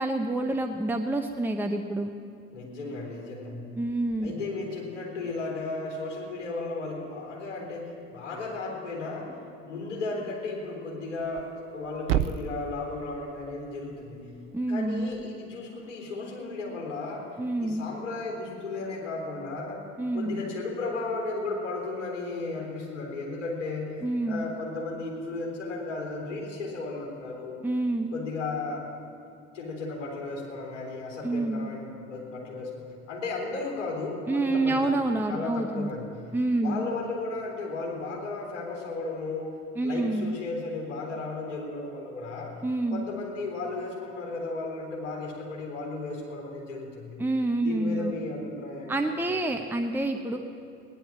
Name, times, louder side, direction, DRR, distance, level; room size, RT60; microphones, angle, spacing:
voice 1, 0.0-2.1 3.8-4.3 14.5-15.1 17.4-17.9 20.0-20.4 24.0-24.5 27.6-28.1 31.2-31.7 34.3-35.9 36.3-36.8 39.8-40.4 42.6-43.1 47.2-48.2 48.9-50.4, right 2 dB, 5° right, 4 dB, 0.9 m, -28 dB
voice 2, 2.5-3.6 4.2-9.4 9.7-14.3 14.7-17.3 17.6-19.8 20.1-27.6 28.1-28.9 29.5-34.9 35.3-36.1 36.6-39.5 39.8-42.5 42.9-47.2 47.6-49.0 49.3-49.4, left 3 dB, 70° left, -1 dB, 3.8 m, -35 dB
Thump thud, 11.2-15.3, right 11 dB, 75° right, 0.5 m, -35 dB
18.0 x 11.0 x 7.3 m, 2.5 s
figure-of-eight pair, 60°, 37 cm